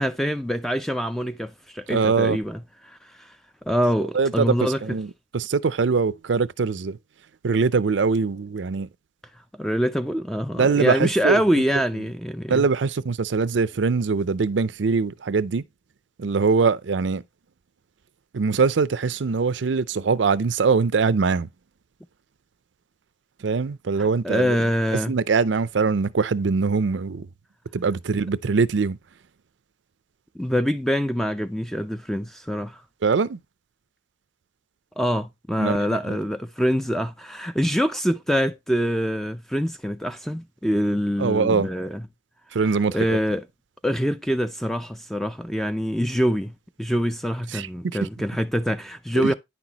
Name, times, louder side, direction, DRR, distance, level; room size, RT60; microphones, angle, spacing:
voice 1, 0.0-3.3 3.7-4.8 9.6-12.7 24.0-25.2 30.4-32.8 35.0-42.1 42.6-43.4 43.8-46.5 46.8-49.3, equal, ahead, 0.4 m, -25 dB
voice 2, 1.9-2.4 4.1-4.5 4.8-5.1 5.3-7.0 7.4-8.9 10.6-11.4 12.5-15.6 16.2-17.2 18.3-21.5 23.4-24.6 25.1-27.3 27.7-29.0 33.0-33.4 35.6-35.8 36.1-36.2 41.2-41.7 42.5-43.2 47.5-47.7 49.2-49.3, right 4 dB, 85° right, 0.5 m, -22 dB
9.7 x 6.0 x 2.9 m
head